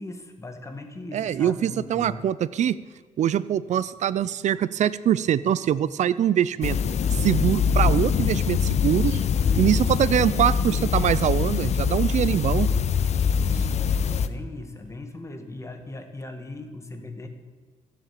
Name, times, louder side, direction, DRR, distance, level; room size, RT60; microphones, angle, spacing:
voice 1, 0.0-2.3 9.5-10.2 12.2-17.3, left 2 dB, 20° left, 6 dB, 1.7 m, -39 dB
voice 2, 1.1-2.8 3.2-6.8 7.2-9.2 9.6-12.7, right 10 dB, 65° right, 17 dB, 0.5 m, -23 dB
sound 1, 6.6-14.3, left 6 dB, 60° left, 0.6 m, -23 dB
14.0 x 7.6 x 8.5 m, 1.4 s
cardioid pair, 115°, 13 cm